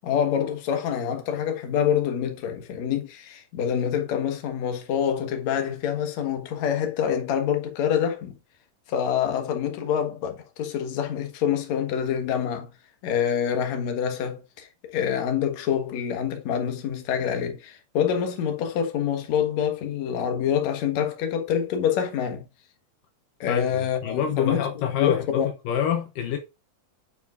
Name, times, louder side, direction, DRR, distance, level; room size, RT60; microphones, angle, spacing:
voice 1, 0.0-8.4 8.9-12.7 13.0-22.4 23.4-25.5, left 8 dB, 60° left, 2.4 m, -26 dB
voice 2, 23.5-26.4, left 9 dB, 75° left, 2.5 m, -26 dB
9.4 x 5.0 x 2.5 m
omnidirectional pair, 4.0 m